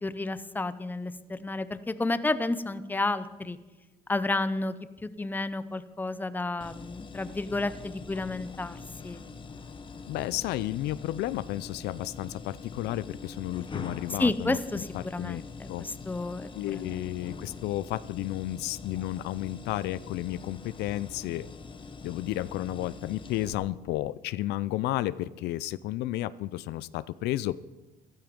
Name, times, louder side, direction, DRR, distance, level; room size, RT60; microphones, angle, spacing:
voice 1, 0.0-3.6 4.1-9.2 14.2-17.0, left 2 dB, 10° left, 14 dB, 0.7 m, -31 dB
sound 1, 6.6-23.5, left 4 dB, 30° left, 1.0 m, -44 dB
voice 2, 10.1-15.4 15.7-15.9 16.5-21.5 22.0-27.6, left 15 dB, 80° left, 18 dB, 0.5 m, -32 dB
13.5 x 12.5 x 5.3 m, 1.1 s
cardioid pair, 110°, 17 cm